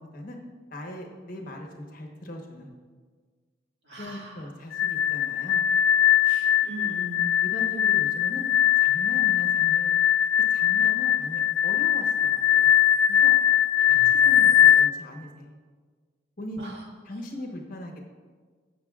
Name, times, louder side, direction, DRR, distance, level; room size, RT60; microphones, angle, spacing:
voice 1, 0.7-2.7 4.0-5.6 7.4-8.4 8.8-9.9 10.5-12.7 13.1-13.3 13.9-15.5 16.4-16.6 17.1-18.0, left 1 dB, 45° left, 2 dB, 1.1 m, -39 dB
voice 2, 3.8-4.5 6.2-7.3 13.8-14.2 16.6-16.8, equal, 65° right, -3 dB, 2.1 m, -40 dB
sound 1, 4.7-14.9, left 10 dB, 85° left, 0.4 m, -21 dB
16.0 x 6.4 x 2.4 m, 1.5 s
head